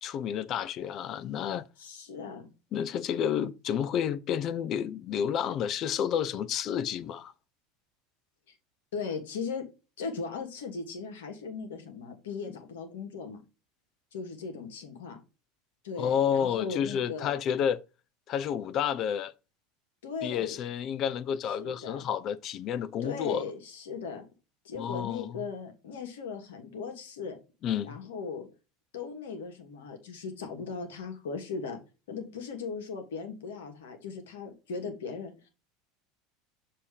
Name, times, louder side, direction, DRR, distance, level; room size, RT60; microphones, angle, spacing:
voice 1, 0.0-1.7 2.7-7.3 12.5-12.6 16.0-17.8 18.3-19.3 20.2-23.4 24.8-25.4 27.6-28.0, left 8 dB, 45° left, 0.5 m, -30 dB
voice 2, 1.8-2.5 8.9-9.6 10.0-13.4 14.1-15.2 15.8-17.4 20.0-20.6 21.6-22.0 23.0-24.2 24.6-27.4 27.8-28.5 28.9-31.8 32.1-35.5, left 5 dB, 75° left, 1.3 m, -38 dB
6.8 x 2.9 x 4.8 m
hypercardioid pair, 80°, 0 cm